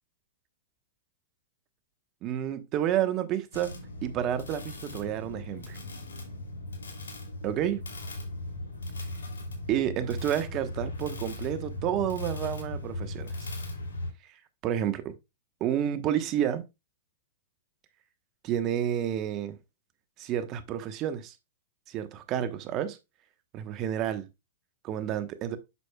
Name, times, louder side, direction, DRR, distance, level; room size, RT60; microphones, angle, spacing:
voice 1, 2.2-3.7 4.0-5.8 7.4-7.8 9.7-13.5 14.6-15.1 15.6-16.6 18.4-19.6 20.2-21.3 21.9-23.0 23.5-24.3 24.8-25.6, right 10 dB, 35° right, 1.0 m, -30 dB
sound 1, 3.5-14.1, left 1 dB, 85° left, 2.9 m, -38 dB
8.3 x 6.2 x 2.3 m
hypercardioid pair, 120°, 0 cm